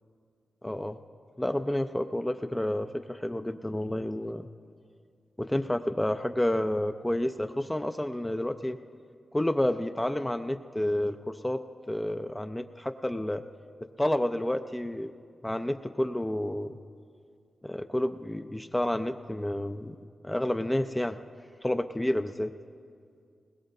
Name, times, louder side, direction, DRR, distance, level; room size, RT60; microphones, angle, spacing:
voice 1, 0.6-1.0 1.4-4.5 5.4-8.8 9.3-13.4 14.0-15.1 15.4-16.8 17.6-20.0 20.2-21.2 21.6-22.5, left 1 dB, 10° left, 7 dB, 0.4 m, -30 dB
20.5 x 20.0 x 2.7 m, 2.3 s
wide cardioid pair, 110°, 0 cm